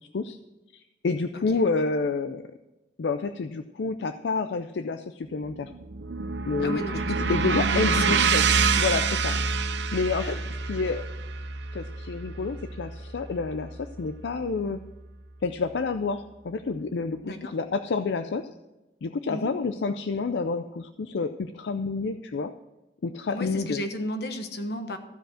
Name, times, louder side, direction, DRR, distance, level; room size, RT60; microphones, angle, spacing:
voice 1, 0.7-2.5 3.0-5.7 6.5-8.4 8.7-9.3 9.9-10.4 10.7-11.1 11.7-14.8 15.4-18.5 19.0-22.5 23.0-23.8, left 4 dB, 85° left, 9 dB, 0.5 m, -29 dB
sound 1, 5.4-13.7, right 5 dB, 80° right, 0.6 m, -27 dB
voice 2, 6.6-8.2 10.2-10.4 17.2-17.5 19.3-19.5 23.3-25.0, left 1 dB, 65° left, 7 dB, 1.2 m, -34 dB
15.0 x 5.2 x 6.3 m, 1.0 s
head